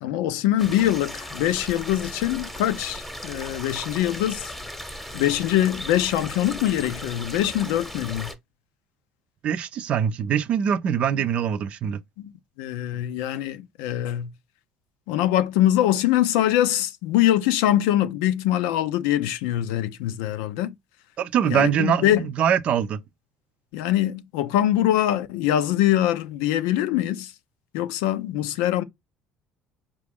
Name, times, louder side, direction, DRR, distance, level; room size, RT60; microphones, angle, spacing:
voice 1, 0.0-4.5 5.1-8.3 11.1-11.2 12.2-12.3 12.6-14.3 15.1-20.7 21.5-22.2 23.7-27.3 27.7-28.8, left 12 dB, 85° left, 0.5 m, -23 dB
sound 1, 0.6-8.3, equal, 5° left, 1.0 m, -37 dB
voice 2, 9.4-12.0 21.2-23.0, right 8 dB, 50° right, 0.5 m, -23 dB
4.6 x 2.4 x 3.5 m
supercardioid pair, 100°, 3 cm